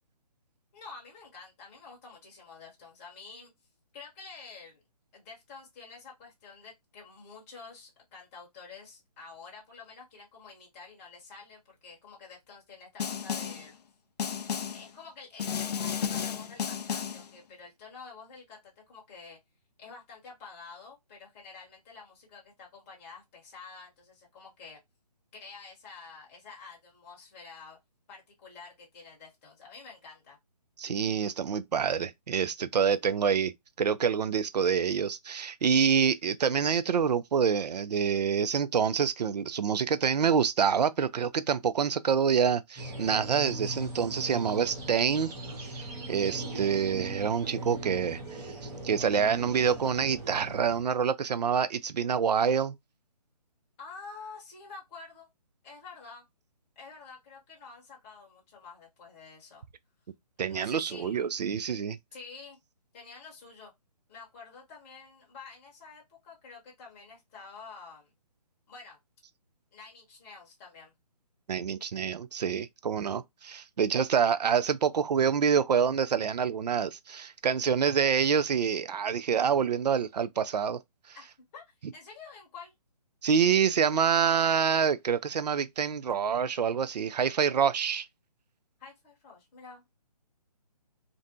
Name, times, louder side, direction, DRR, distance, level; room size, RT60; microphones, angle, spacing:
voice 1, 0.7-3.5 3.9-4.8 5.1-13.8 14.7-19.4 19.8-24.8 25.3-27.8 28.1-30.4 53.8-55.3 55.6-56.3 56.8-59.6 60.5-61.4 62.1-62.6 62.9-63.7 64.1-68.1 68.7-69.0 69.7-70.9 81.1-82.7 88.8-89.9, left 4 dB, 20° left, 0.8 m, -49 dB
Snare drum, 13.0-13.7 14.2-14.9 15.4-17.3, left 7 dB, 75° left, 0.4 m, -33 dB
voice 2, 30.8-33.5 33.8-45.3 46.1-48.2 48.8-52.8 60.4-62.0 71.5-80.8 81.1-81.2 83.2-88.1, right 7 dB, 80° right, 0.4 m, -26 dB
sound 1, 42.8-50.8, right 1 dB, 10° right, 0.5 m, -40 dB
2.5 x 2.2 x 2.6 m
hypercardioid pair, 150°, 21 cm